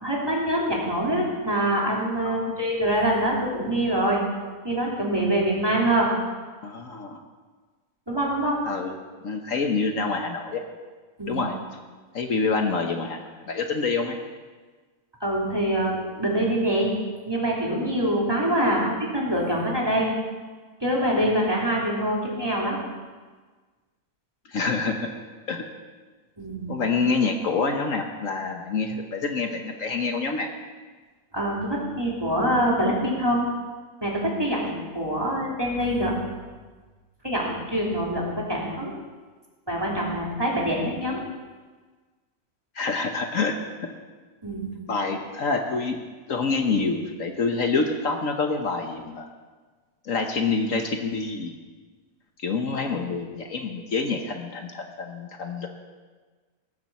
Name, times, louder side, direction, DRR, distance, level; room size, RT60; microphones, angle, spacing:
voice 1, 0.0-4.2 4.6-6.1 8.1-8.6 11.2-11.4 15.2-16.9 17.2-20.1 20.8-22.8 26.4-26.7 31.3-33.4 34.0-36.1 37.2-38.9 39.7-41.2 44.4-44.7, right 1 dB, 15° right, -4 dB, 3.2 m, -25 dB
voice 2, 2.2-2.6 6.6-7.2 8.7-9.0 9.2-10.6 11.3-11.6 12.1-14.2 18.8-18.9 24.5-25.1 25.5-25.6 26.7-30.5 35.2-35.4 42.7-43.9 44.9-46.0 46.3-49.3 50.0-51.5 52.4-55.7, left 4 dB, 60° left, 4 dB, 1.4 m, -27 dB
18.5 x 7.3 x 7.3 m, 1.4 s
omnidirectional pair, 1.6 m